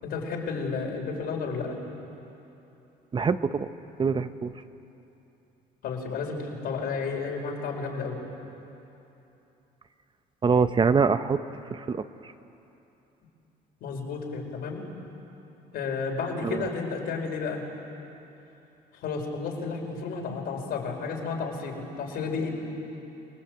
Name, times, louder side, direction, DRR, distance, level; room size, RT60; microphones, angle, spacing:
voice 1, 0.0-1.8 5.8-8.2 13.8-14.8 15.7-17.6 18.9-22.5, left 4 dB, 70° left, 0 dB, 5.0 m, -32 dB
voice 2, 3.1-3.7 4.0-4.5 10.4-11.4 11.7-12.0 16.4-16.6, right 5 dB, 30° right, 11 dB, 0.8 m, -24 dB
28.0 x 19.5 x 8.1 m, 3.0 s
cardioid pair, 110°, 17 cm